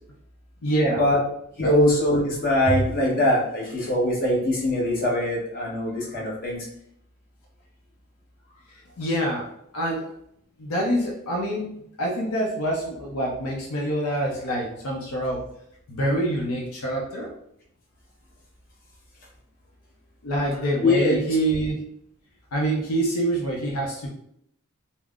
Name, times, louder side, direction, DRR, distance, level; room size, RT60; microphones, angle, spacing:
voice 1, 0.6-1.0 1.6-1.7 9.0-9.5 9.7-10.0 10.6-11.7 12.0-15.4 15.9-17.3 20.2-21.8 22.5-24.1, right 1 dB, 80° left, -1 dB, 0.6 m, -25 dB
voice 2, 1.6-6.7 20.8-21.2, left 1 dB, 40° left, -4 dB, 0.9 m, -22 dB
3.7 x 2.0 x 2.3 m, 0.72 s
head